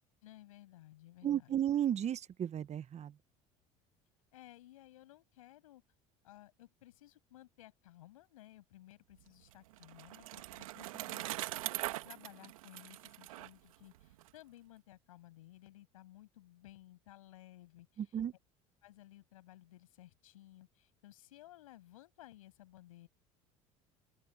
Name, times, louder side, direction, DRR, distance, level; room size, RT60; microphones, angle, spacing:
voice 1, 0.2-1.6 4.3-5.8 6.2-11.2 12.0-18.2 18.8-23.1, left 15 dB, 90° left, 7.9 m, -57 dB
voice 2, 1.2-3.1 18.0-18.3, right 10 dB, 40° right, 1.2 m, -34 dB
Bicycle, 9.2-14.3, right 17 dB, 90° right, 1.6 m, -42 dB
open air
hypercardioid pair, 80°, 17 cm